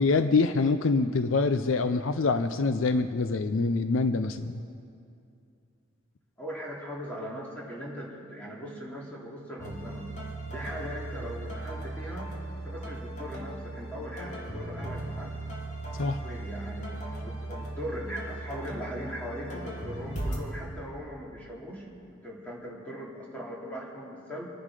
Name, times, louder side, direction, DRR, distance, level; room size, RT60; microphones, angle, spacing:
voice 1, 0.0-4.6 16.0-16.2, left 3 dB, 65° left, 10 dB, 0.5 m, -25 dB
voice 2, 6.4-10.1 10.5-12.3 12.6-15.3 16.2-21.9 22.1-24.5, equal, 5° left, -5 dB, 2.8 m, -39 dB
sound 1, 9.6-20.4, right 1 dB, 35° left, 2.1 m, -37 dB
25.5 x 11.0 x 4.9 m, 2.4 s
head